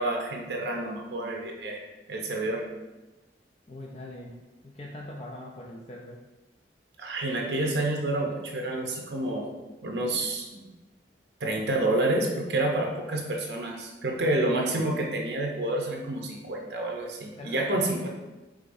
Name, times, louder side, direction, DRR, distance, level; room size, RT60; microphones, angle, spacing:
voice 1, 0.0-2.6 7.0-9.5 9.8-10.6 11.4-18.1, right 2 dB, 65° right, 0 dB, 0.6 m, -29 dB
voice 2, 3.7-4.4 4.6-6.2 14.0-14.2 17.3-18.1, left 1 dB, 35° left, -2 dB, 0.4 m, -42 dB
4.8 x 3.7 x 2.6 m, 1.1 s
head